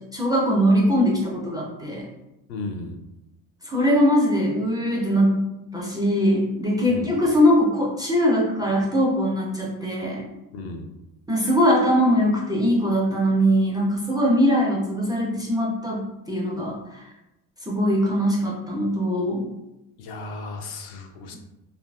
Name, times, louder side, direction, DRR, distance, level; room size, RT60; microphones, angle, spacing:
voice 1, 0.1-2.1 3.6-5.4 5.7-10.3 11.3-17.0 17.7-19.5, equal, 10° right, -4 dB, 0.4 m, -21 dB
voice 2, 2.5-3.0 6.9-7.1 10.5-10.9 20.0-21.4, left 3 dB, 55° left, 4 dB, 0.6 m, -34 dB
2.8 x 2.5 x 2.2 m, 0.94 s
hypercardioid pair, 75°, 46 cm